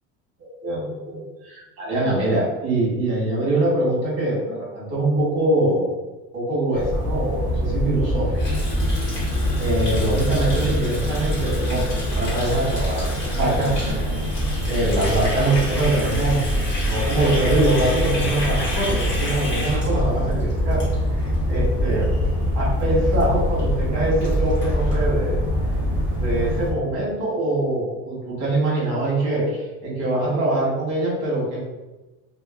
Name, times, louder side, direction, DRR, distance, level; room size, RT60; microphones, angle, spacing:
voice 1, 0.6-5.9 6.3-8.3 9.6-13.8 14.7-16.4 16.9-20.8 21.2-22.1 22.5-25.4 26.2-31.6, right 2 dB, 40° right, -5 dB, 1.4 m, -23 dB
sound 1, 6.7-26.7, equal, 5° right, 0.3 m, -24 dB
Water tap faucet, 8.3-21.3 21.6-21.9 22.2-22.5 22.8-22.9 23.1-23.2 23.6-23.7 23.9-24.9, left 1 dB, 30° left, 1.1 m, -33 dB
3.0 x 2.2 x 2.3 m, 1.1 s
cardioid pair, 155°, 38 cm